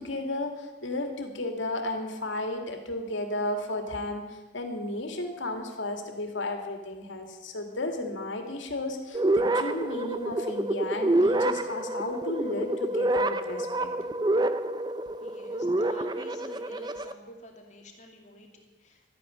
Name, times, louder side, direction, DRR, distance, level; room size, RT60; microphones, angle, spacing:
voice 1, 0.0-13.9, left 2 dB, 80° left, 4 dB, 2.4 m, -33 dB
sound 1, 9.1-17.1, right 1 dB, 20° right, 0.5 m, -28 dB
voice 2, 15.2-19.1, left 1 dB, 40° left, 2 dB, 2.5 m, -49 dB
13.0 x 9.7 x 9.9 m, 1.2 s
head